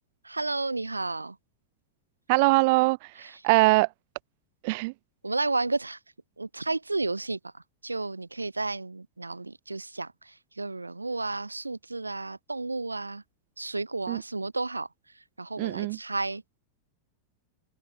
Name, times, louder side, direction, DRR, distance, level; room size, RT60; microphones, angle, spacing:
voice 1, 0.2-1.4 3.2-3.4 5.2-6.0 6.4-13.2 13.6-14.9 15.1-16.4, right 3 dB, 80° right, 2.0 m, -32 dB
voice 2, 2.3-3.1 3.4-3.9 4.6-4.9 14.1-14.2 15.6-16.0, right 26 dB, 50° right, 0.6 m, -22 dB
figure-of-eight pair, 90°, 0 cm